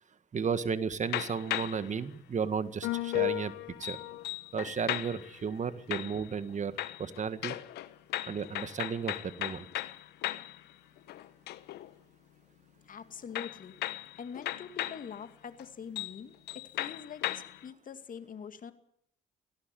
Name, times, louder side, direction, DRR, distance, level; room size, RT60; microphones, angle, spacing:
voice 1, 0.3-3.5 3.8-4.0 4.5-7.6 8.3-9.8, right 6 dB, 45° right, 12 dB, 1.7 m, -34 dB
sound 1, 1.0-1.9 2.8-5.4 5.9-6.5 6.8-10.6 11.0-11.9 13.3-15.1 15.6-15.7 16.0-16.2 16.5-17.6, left 15 dB, 80° left, 1.1 m, -36 dB
voice 2, 12.9-13.8 14.2-18.7, left 7 dB, 55° left, 9 dB, 2.4 m, -44 dB
17.5 x 17.0 x 9.3 m, 0.70 s
supercardioid pair, 60°, 17 cm